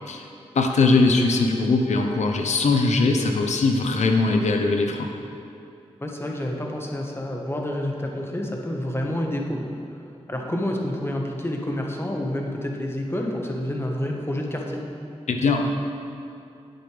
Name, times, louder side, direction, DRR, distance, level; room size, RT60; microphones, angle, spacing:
voice 1, 0.5-5.1 15.3-15.6, left 3 dB, 85° left, 4 dB, 0.8 m, -20 dB
voice 2, 6.0-9.8 10.3-14.8, left 1 dB, 20° left, 0 dB, 1.4 m, -28 dB
10.5 x 8.0 x 3.4 m, 2.6 s
cardioid pair, 50°, 12 cm